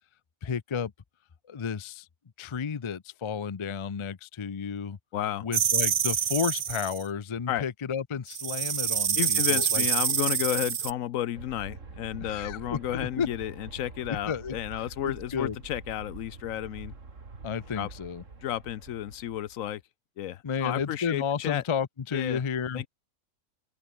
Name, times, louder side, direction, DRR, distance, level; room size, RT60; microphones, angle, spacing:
voice 1, 0.4-0.9 1.5-2.1 2.4-5.0 5.4-9.9 12.2-13.3 14.1-14.6 15.0-15.6 17.4-18.2 20.4-22.9, left 6 dB, 40° left, 0.4 m, -32 dB
voice 2, 5.1-5.5 7.5-7.6 9.1-16.9 17.8-17.9 18.4-19.8 20.2-21.6 22.1-22.4 22.7-22.9, left 12 dB, 75° left, 1.1 m, -32 dB
Rattle Snake, 5.5-7.0 8.3-10.9, right 7 dB, 45° right, 0.5 m, -26 dB
Aircraft, 11.3-19.7, right 4 dB, 65° right, 3.0 m, -46 dB
omnidirectional pair, 1.4 m